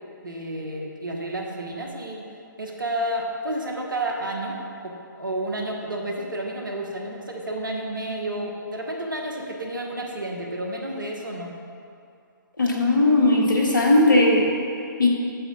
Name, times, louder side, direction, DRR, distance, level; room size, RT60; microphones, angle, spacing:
voice 1, 0.2-2.2 2.6-4.9 5.2-11.5, right 1 dB, 70° right, 1 dB, 1.4 m, -30 dB
voice 2, 12.6-14.4 15.0-15.1, left 2 dB, 70° left, -1 dB, 1.7 m, -18 dB
8.6 x 7.5 x 3.9 m, 2.5 s
figure-of-eight pair, 130°, 11 cm